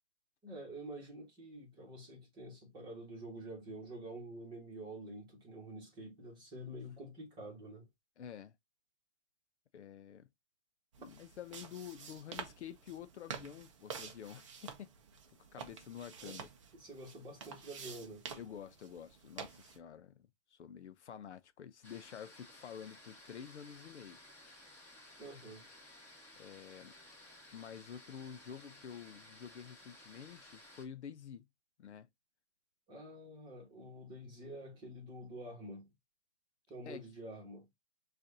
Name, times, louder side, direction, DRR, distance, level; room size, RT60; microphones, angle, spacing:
voice 1, 0.4-7.9 16.2-16.4 16.7-18.3 25.2-25.6 32.9-35.9 36.7-37.7, right 1 dB, 10° right, 1.3 m, -48 dB
voice 2, 8.2-8.5 9.7-10.3 11.0-14.9 15.5-16.5 18.4-24.2 26.4-26.9 27.5-31.5 31.8-32.1 36.8-37.1, left 8 dB, 70° left, 0.7 m, -49 dB
sound 1, 10.9-19.8, right 6 dB, 30° right, 0.5 m, -49 dB
sound 2, 21.8-30.8, left 1 dB, 5° left, 1.4 m, -57 dB
6.4 x 2.5 x 2.7 m
hypercardioid pair, 155°, 35 cm